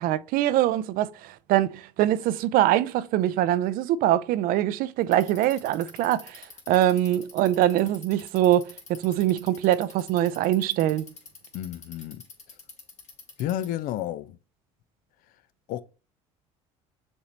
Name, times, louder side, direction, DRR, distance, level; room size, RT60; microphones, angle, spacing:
voice 1, 0.0-11.1, right 13 dB, 65° right, 0.4 m, -23 dB
Bicycle, 5.0-13.8, left 4 dB, 45° left, 1.9 m, -47 dB
voice 2, 11.5-12.2 13.4-14.4 15.7-15.8, left 12 dB, 60° left, 0.4 m, -31 dB
6.8 x 2.7 x 3.0 m
hypercardioid pair, 70°, 16 cm